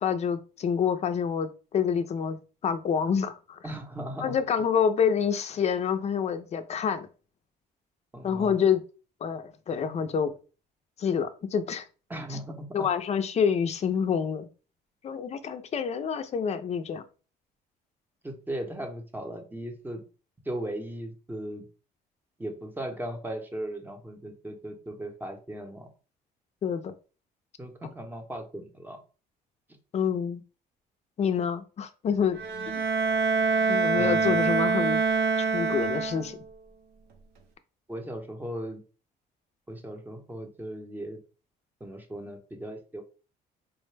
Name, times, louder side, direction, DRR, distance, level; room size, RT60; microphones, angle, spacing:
voice 1, 0.0-3.6 4.2-7.1 8.2-8.8 9.2-10.3 11.0-11.8 12.7-14.5 15.0-17.0 26.6-26.9 27.8-27.9 29.9-30.4 31.2-32.4 32.7-32.8 33.7-35.0 35.4-36.4, left 7 dB, 40° left, 0.5 m, -27 dB
voice 2, 3.6-4.4 8.1-8.6 12.1-12.9 18.2-20.0 20.4-21.7 22.4-25.9 27.6-29.0 34.0-34.7 37.9-38.8 39.7-41.2 41.8-43.1, right 1 dB, 10° right, 0.8 m, -37 dB
Bowed string instrument, 32.4-36.5, right 4 dB, 75° right, 0.7 m, -25 dB
4.6 x 2.1 x 3.2 m
cardioid pair, 110°, 17 cm